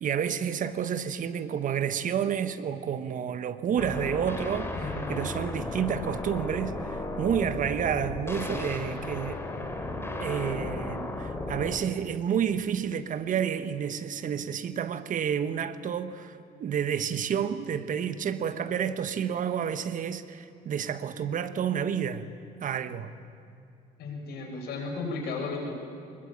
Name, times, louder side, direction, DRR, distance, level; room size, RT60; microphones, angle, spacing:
voice 1, 0.0-9.4 10.2-22.3 22.6-23.1, right 8 dB, 50° right, 12 dB, 1.3 m, -30 dB
sound 1, 3.8-11.8, left 2 dB, 15° left, 3.3 m, -34 dB
voice 2, 4.7-5.1 24.0-25.7, left 3 dB, 75° left, 2 dB, 6.6 m, -34 dB
23.0 x 21.5 x 9.0 m, 2.6 s
cardioid pair, 110°, 17 cm